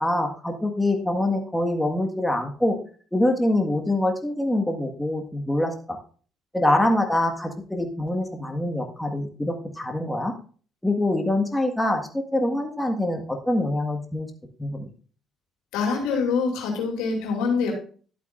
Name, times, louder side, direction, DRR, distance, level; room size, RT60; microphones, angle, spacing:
voice 1, 0.0-2.8 3.1-6.0 6.5-10.3 10.8-14.3 14.6-14.9, left 1 dB, 5° left, 3 dB, 1.7 m, -24 dB
voice 2, 15.7-17.7, left 5 dB, 85° left, 1 dB, 2.7 m, -25 dB
12.0 x 8.0 x 2.6 m, 0.41 s
supercardioid pair, 65°, 0 cm